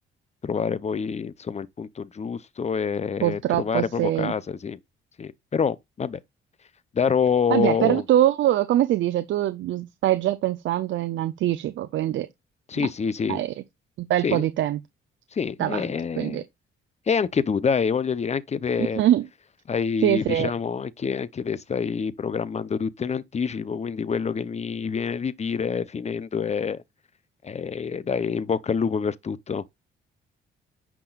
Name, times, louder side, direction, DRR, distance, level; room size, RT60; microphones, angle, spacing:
voice 1, 0.4-4.8 5.2-6.2 6.9-8.0 12.7-13.4 14.2-14.5 15.3-16.4 17.1-19.0 19.7-26.8 27.4-29.6, left 6 dB, 35° left, 0.8 m, -26 dB
voice 2, 3.2-4.3 7.5-12.3 12.8-12.9 13.3-13.5 14.0-14.8 15.6-15.8 16.2-16.4 18.8-19.3 20.0-20.5, right 12 dB, 75° right, 0.7 m, -23 dB
10.5 x 6.1 x 2.5 m
cardioid pair, 90°, 20 cm